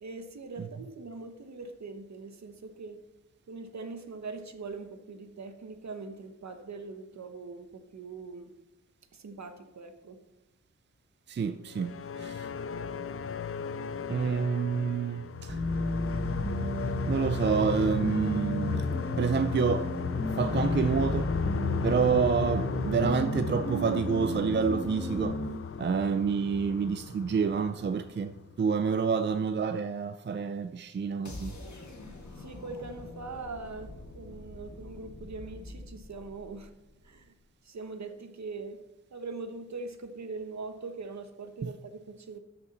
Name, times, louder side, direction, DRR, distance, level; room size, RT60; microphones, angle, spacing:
voice 1, 0.0-3.0 3.5-8.5 9.1-10.2 32.4-33.9 34.1-36.7 37.0-37.3 37.6-38.8 39.1-42.4, right 3 dB, 65° right, 1.0 m, -42 dB
voice 2, 11.3-12.5 14.1-15.6 17.1-18.8 19.2-19.9 20.4-21.3 21.8-25.4 25.8-28.3 28.6-31.5, right 6 dB, 40° right, 0.4 m, -28 dB
sound 1, 11.7-28.5, left 7 dB, 50° left, 0.4 m, -35 dB
sound 2, 15.5-25.5, equal, 5° right, 1.1 m, -33 dB
sound 3, 31.2-37.2, left 2 dB, 70° left, 1.7 m, -45 dB
12.5 x 5.7 x 4.0 m
wide cardioid pair, 125°, 30 cm